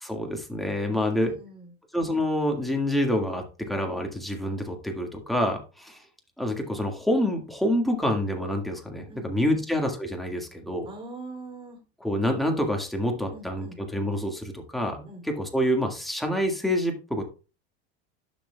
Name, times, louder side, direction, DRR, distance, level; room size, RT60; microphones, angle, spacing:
voice 1, 0.0-1.3 1.9-6.0 6.4-10.9 12.0-17.2, left 1 dB, ahead, 2 dB, 1.8 m, -27 dB
voice 2, 0.9-1.7 9.1-9.6 10.8-11.8 13.3-13.8 15.0-15.2, right 2 dB, 15° right, 3 dB, 3.1 m, -43 dB
12.0 x 6.0 x 2.3 m, 0.33 s
supercardioid pair, 110°, 32 cm